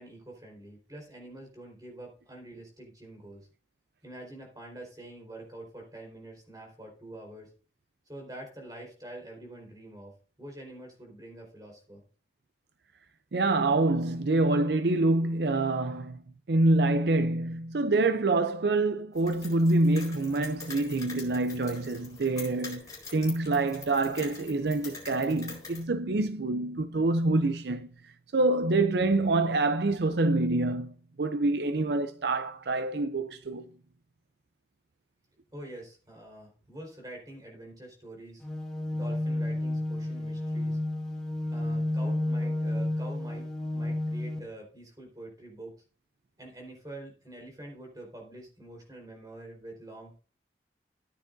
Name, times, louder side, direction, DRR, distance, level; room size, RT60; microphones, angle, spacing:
voice 1, 0.0-3.5 4.0-7.5 8.1-12.0 35.5-38.4 38.9-40.8 41.5-45.7 46.4-50.2, right 1 dB, 20° right, 4.3 m, -46 dB
voice 2, 13.3-16.2 16.5-33.7, right 2 dB, 70° right, 0.5 m, -26 dB
sound 1, 19.1-25.8, left 4 dB, 20° left, 4.2 m, -45 dB
sound 2, 38.4-44.4, left 1 dB, 5° left, 1.7 m, -31 dB
14.0 x 9.8 x 2.6 m
head